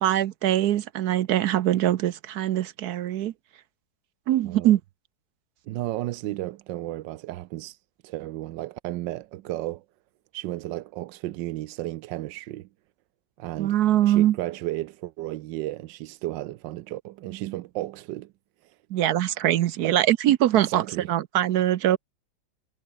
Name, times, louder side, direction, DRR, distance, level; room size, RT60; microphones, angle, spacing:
voice 1, 0.0-3.3 4.3-4.8 13.6-14.4 18.9-22.0, right 12 dB, 70° right, 1.1 m, -22 dB
voice 2, 5.7-7.8 8.0-9.8 10.3-12.7 13.4-18.3 18.6-18.8 19.8-20.0 20.5-21.1, right 16 dB, 90° right, 1.3 m, -34 dB
omnidirectional pair, 1.9 m